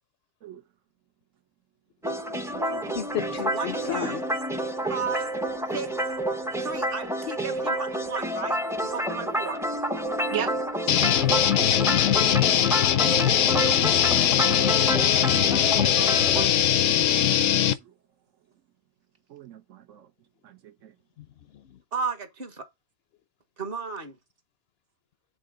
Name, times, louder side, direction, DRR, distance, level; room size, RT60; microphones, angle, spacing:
sound 1, 2.0-16.5, right 1 dB, 5° right, 0.4 m, -29 dB
voice 1, 2.1-3.1 10.3-10.5 10.9-11.0 14.9-15.4 15.8-16.1 16.5-16.6 17.3-17.5 17.8-17.9 19.3-20.1 20.4-20.9, right 10 dB, 80° right, 1.2 m, -39 dB
voice 2, 2.9-4.2 11.8-12.6 21.2-21.3 21.7-21.8, left 10 dB, 65° left, 0.7 m, -34 dB
voice 3, 3.5-4.2 4.9-5.3 5.7-5.9 6.6-9.6 14.5-14.7 21.9-22.6 23.6-24.2, right 4 dB, 50° right, 1.3 m, -34 dB
sound 2, 10.9-17.7, left 10 dB, 85° left, 1.0 m, -21 dB
7.6 x 3.8 x 3.7 m
omnidirectional pair, 1.3 m